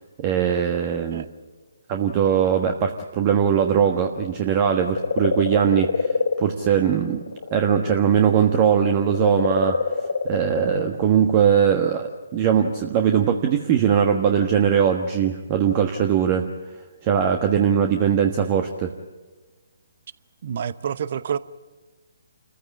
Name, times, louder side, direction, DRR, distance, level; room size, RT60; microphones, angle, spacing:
voice 1, 0.2-1.2 1.9-6.1 6.4-7.2 7.5-9.8 10.2-16.5 17.0-18.9, right 8 dB, 30° right, 5 dB, 1.3 m, -20 dB
sound 1, 4.5-8.0 8.3-10.9 11.9-12.0, left 5 dB, 65° left, 1.8 m, -26 dB
voice 2, 20.4-21.4, right 8 dB, 45° right, 16 dB, 0.9 m, -28 dB
28.0 x 15.0 x 8.5 m, 1.3 s
figure-of-eight pair, 140°, 0 cm